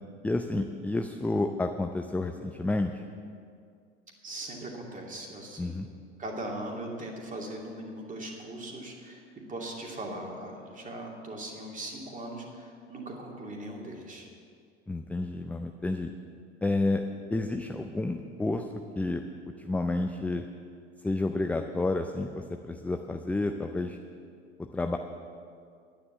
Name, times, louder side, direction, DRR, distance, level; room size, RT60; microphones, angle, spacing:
voice 1, 0.2-3.0 5.6-5.9 14.9-16.1 16.6-17.0 17.3-20.4 21.0-24.0 24.6-25.0, left 2 dB, 5° left, 5 dB, 0.4 m, -30 dB
voice 2, 4.2-5.8 6.2-9.2 9.5-14.3, right 1 dB, 25° right, 0 dB, 2.5 m, -39 dB
10.5 x 9.6 x 7.1 m, 2.2 s
figure-of-eight pair, 75°, 34 cm